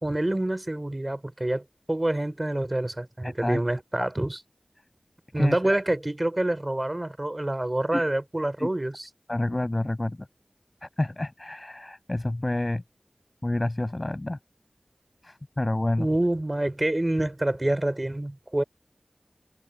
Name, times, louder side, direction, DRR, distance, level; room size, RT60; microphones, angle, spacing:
voice 1, 0.0-4.4 5.3-9.1 16.0-18.6, right 1 dB, 35° right, 3.2 m, -27 dB
voice 2, 3.2-3.6 4.0-4.1 5.4-5.8 7.9-8.1 8.6-8.7 9.3-10.3 10.8-12.8 13.4-14.4 15.2-16.1, left 1 dB, 40° left, 5.4 m, -29 dB
wide cardioid pair, 40°, 0 cm